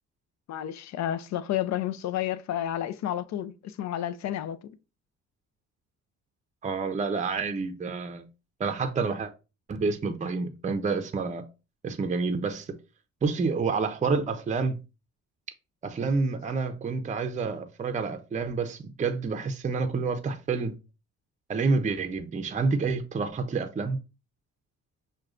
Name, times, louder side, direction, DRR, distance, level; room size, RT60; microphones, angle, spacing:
voice 1, 0.5-4.7, left 11 dB, 65° left, 0.5 m, -31 dB
voice 2, 6.6-8.2 8.6-9.3 9.7-11.4 11.8-12.7 13.2-14.7 15.8-20.8 21.5-24.0, right 4 dB, 25° right, 0.5 m, -28 dB
6.1 x 2.2 x 2.4 m
cardioid pair, 90°, 30 cm